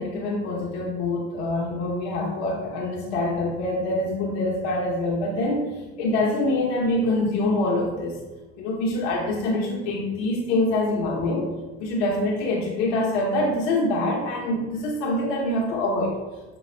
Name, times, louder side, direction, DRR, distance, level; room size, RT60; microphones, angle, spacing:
voice 1, 0.0-8.2 8.6-11.5 11.8-16.2, left 2 dB, 85° left, -2 dB, 0.8 m, -25 dB
5.9 x 2.3 x 3.2 m, 1.2 s
supercardioid pair, 80°, 32 cm